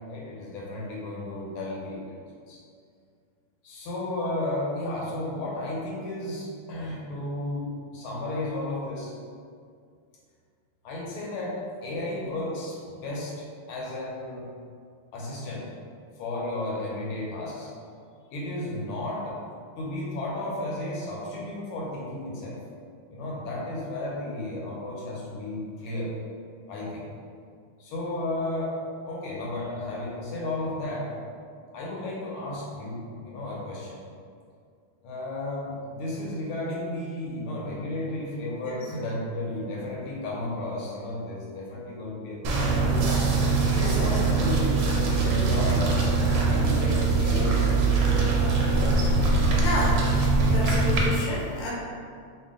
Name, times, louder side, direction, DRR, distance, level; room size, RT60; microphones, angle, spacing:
voice 1, 0.1-2.2 2.5-2.6 3.6-9.1 10.8-14.4 15.1-15.7 16.2-17.7 18.3-19.4 19.8-22.6 23.1-26.1 26.7-27.1 27.8-28.8 29.0-31.1 31.7-34.0 35.0-43.2 43.7-48.1, left 1 dB, 75° left, -4 dB, 1.6 m, -33 dB
sound 1, 42.4-51.1, right 3 dB, 75° right, 1.2 m, -22 dB
voice 2, 43.7-44.1 49.2-50.0 50.4-51.7, left 1 dB, 60° left, -6 dB, 1.1 m, -32 dB
3.5 x 2.4 x 3.6 m, 2.2 s
omnidirectional pair, 2.4 m